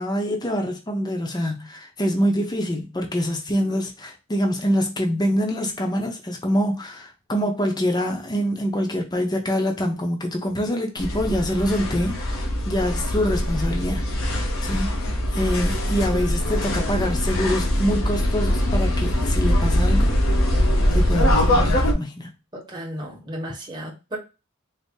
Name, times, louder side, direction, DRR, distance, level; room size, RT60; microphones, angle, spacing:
voice 1, 0.0-14.0 14.6-20.1 20.9-22.3, equal, 20° left, 0.6 m, -25 dB
sound 1, 11.0-21.9, left 1 dB, 90° left, 1.0 m, -22 dB
voice 2, 22.5-24.2, right 1 dB, 20° right, 1.1 m, -34 dB
4.0 x 2.0 x 3.6 m
head